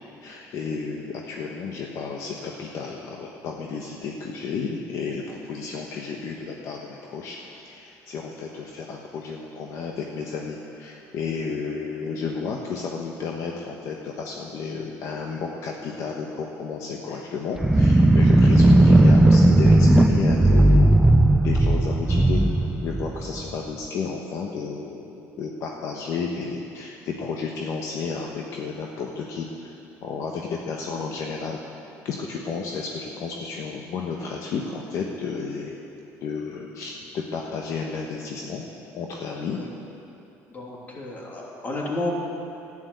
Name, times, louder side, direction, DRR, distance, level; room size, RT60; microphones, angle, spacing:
voice 1, 0.2-20.9 21.3-22.4 22.8-29.7 30.0-31.6 32.0-35.8 36.2-38.6 38.9-39.6, left 5 dB, 60° left, 0 dB, 1.2 m, -32 dB
sound 1, 17.6-23.5, right 1 dB, 5° right, 0.6 m, -16 dB
voice 2, 40.5-42.2, left 1 dB, 30° left, -2 dB, 3.0 m, -31 dB
11.5 x 9.2 x 9.4 m, 2.9 s
cardioid pair, 120°, 6 cm